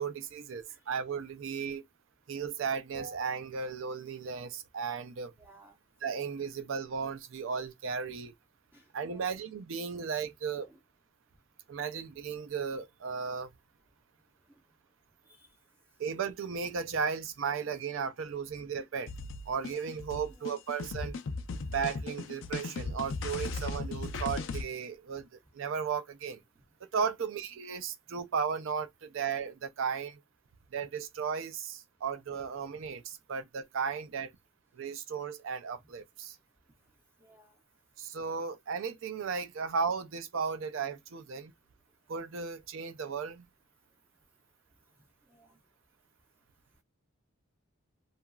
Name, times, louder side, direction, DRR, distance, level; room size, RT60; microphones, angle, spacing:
voice 1, 0.0-1.8 2.3-5.3 6.0-8.3 8.9-10.7 11.7-13.5 16.0-19.1 19.5-21.2 21.7-25.3 25.5-26.4 26.9-30.2 30.7-34.3 34.7-36.4 38.0-41.5 42.1-43.5, right 6 dB, 70° right, 0.4 m, -35 dB
voice 2, 5.4-5.8 8.7-9.4 10.5-10.8 15.3-15.5 20.1-20.6 37.2-37.5 45.3-45.6, right 2 dB, 10° right, 0.5 m, -59 dB
sound 1, 19.1-24.6, left 3 dB, 65° left, 0.4 m, -37 dB
2.9 x 2.3 x 2.3 m
head